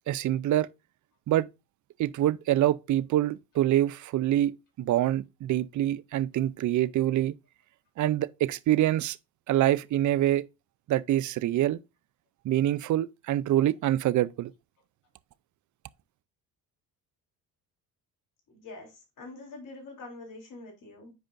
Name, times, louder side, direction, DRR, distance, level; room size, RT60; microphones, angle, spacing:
voice 1, 0.1-0.7 1.3-1.5 2.0-7.3 8.0-9.2 9.5-10.4 10.9-11.8 12.4-14.5, right 13 dB, 50° right, 0.5 m, -25 dB
voice 2, 18.5-21.1, left 2 dB, 55° left, 3.4 m, -45 dB
8.0 x 5.0 x 2.5 m
cardioid pair, 80°, 37 cm